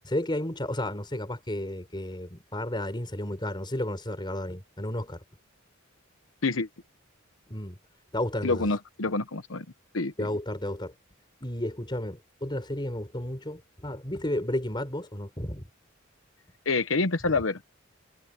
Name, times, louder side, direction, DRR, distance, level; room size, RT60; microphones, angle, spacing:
voice 1, 0.0-5.2 7.5-7.8 8.1-8.7 10.2-10.9 11.4-15.6, left 1 dB, 25° left, 5.0 m, -32 dB
voice 2, 8.4-9.6 9.9-10.3 16.6-17.6, left 3 dB, 75° left, 1.0 m, -27 dB
head